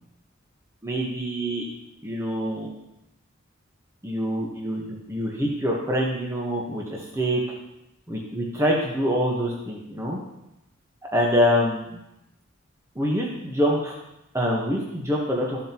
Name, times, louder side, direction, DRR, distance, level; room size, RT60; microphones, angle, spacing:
voice 1, 0.8-1.6 2.0-2.7 4.0-7.4 8.1-10.2 11.1-11.9 12.9-13.9 14.3-15.6, equal, 15° right, -3 dB, 1.2 m, -25 dB
13.5 x 7.3 x 3.0 m, 0.89 s
head